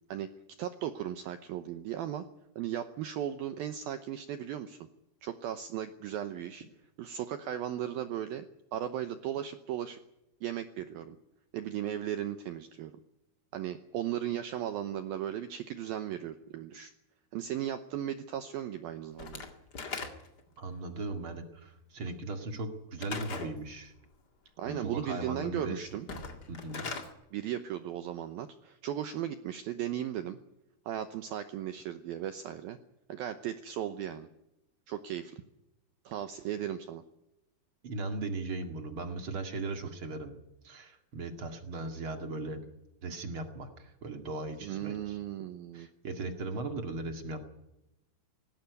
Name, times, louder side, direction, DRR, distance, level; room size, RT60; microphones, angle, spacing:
voice 1, 0.6-2.2 2.6-4.8 5.2-6.7 7.0-8.5 8.7-10.0 10.4-11.2 11.5-12.9 13.5-16.9 17.3-19.5 24.6-26.1 27.3-30.4 30.9-32.8 33.1-34.3 34.9-35.4 36.1-37.0 44.6-45.9, right 11 dB, 80° right, 9 dB, 2.2 m, -36 dB
Slam / Wood, 19.2-20.5 23.0-23.6 26.0-27.1, left 4 dB, 50° left, 1.1 m, -39 dB
voice 2, 20.6-23.9 24.7-25.8 26.5-26.9 37.8-40.3 40.6-42.6 43.0-45.2 45.7-47.4, right 2 dB, 45° right, 6 dB, 1.8 m, -38 dB
19.5 x 17.0 x 9.4 m, 0.87 s
omnidirectional pair, 5.4 m